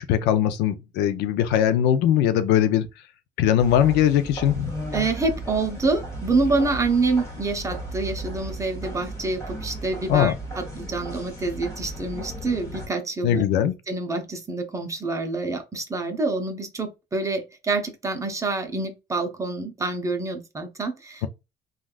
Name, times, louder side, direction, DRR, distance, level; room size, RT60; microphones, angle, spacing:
voice 1, 0.0-2.9 3.4-4.7 10.1-10.4 13.2-13.7, left 10 dB, 90° left, 0.5 m, -20 dB
sound 1, 3.6-12.9, right 1 dB, 20° left, 1.3 m, -35 dB
voice 2, 4.9-13.4 13.9-21.3, right 3 dB, 20° right, 0.7 m, -27 dB
3.3 x 2.4 x 2.3 m
cardioid pair, 110°, 17 cm